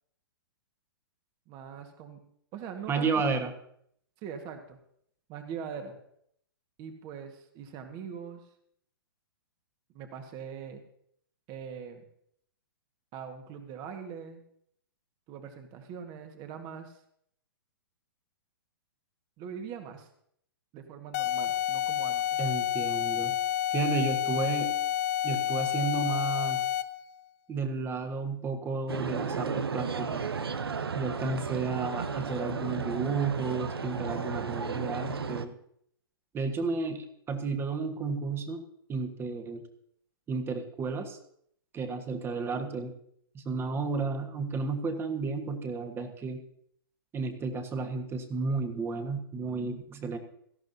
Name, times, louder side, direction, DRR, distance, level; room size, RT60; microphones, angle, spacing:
voice 1, 1.5-2.2 2.5-3.2 4.2-4.8 5.3-6.0 6.8-8.5 9.9-10.8 11.5-12.0 13.1-14.4 15.3-17.0 19.4-20.1 20.7-22.4 23.8-23.9, right 7 dB, 35° right, 6 dB, 1.5 m, -42 dB
voice 2, 2.9-3.5 22.4-23.3 23.7-24.7 25.2-26.6 27.5-30.3 30.9-35.5 36.3-38.6 38.9-39.6 40.3-41.2 41.7-42.9 43.3-46.4 47.1-50.2, right 4 dB, 20° right, 7 dB, 1.4 m, -32 dB
sound 1, 21.1-27.0, left 11 dB, 45° left, 0.5 m, -29 dB
sound 2, 28.9-35.4, right 5 dB, 90° right, 0.8 m, -33 dB
17.5 x 13.0 x 2.7 m, 0.70 s
hypercardioid pair, 125°, 12 cm